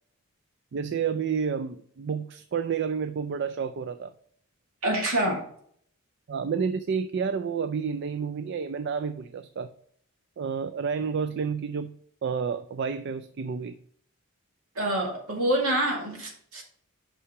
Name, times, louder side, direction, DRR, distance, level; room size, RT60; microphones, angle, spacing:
voice 1, 0.7-4.1 6.3-9.7 10.4-11.9 12.2-13.8, right 6 dB, 50° right, 0.3 m, -30 dB
voice 2, 4.8-5.4 14.8-16.6, right 1 dB, 70° right, 2.2 m, -26 dB
5.7 x 5.6 x 4.7 m
head